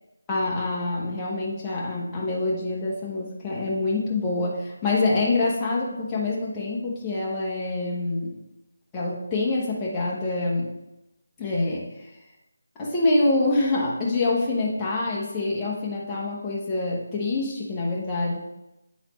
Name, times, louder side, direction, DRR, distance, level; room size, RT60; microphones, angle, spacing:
voice 1, 0.3-8.4 8.9-10.8 11.4-11.9 12.8-18.4, left 2 dB, 10° left, -6 dB, 0.9 m, -26 dB
9.0 x 4.1 x 3.0 m, 0.91 s
figure-of-eight pair, 175°, 0 cm